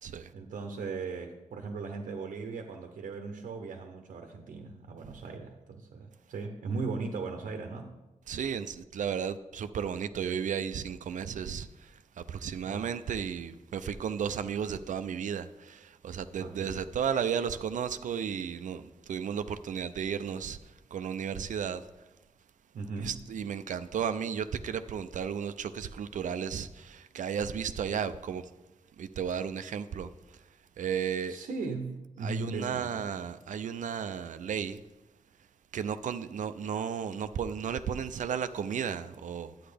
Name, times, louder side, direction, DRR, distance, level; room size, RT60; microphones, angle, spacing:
voice 1, 0.3-7.9 12.6-12.9 16.4-16.8 22.7-23.2 31.3-33.1, right 4 dB, 90° right, 0.8 m, -38 dB
voice 2, 8.3-21.8 23.0-28.5 29.0-30.4 30.8-31.4 32.2-34.8 35.7-39.5, right 7 dB, 70° right, 0.4 m, -34 dB
9.9 x 8.6 x 3.4 m
cardioid pair, 60°, 13 cm